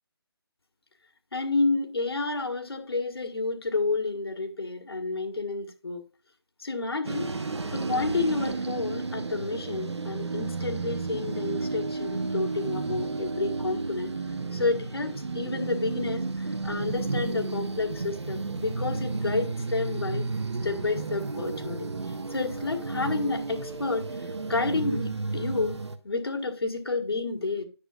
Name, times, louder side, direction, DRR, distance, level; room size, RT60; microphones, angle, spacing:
voice 1, 1.3-6.0 6.6-7.3 7.7-14.1 14.5-20.3 20.6-21.9 22.3-25.8 26.0-27.6, left 3 dB, 65° left, 1.8 m, -30 dB
sound 1, 7.0-26.0, right 3 dB, 80° right, 1.1 m, -32 dB
9.8 x 6.2 x 2.4 m
hypercardioid pair, 180°, 14 cm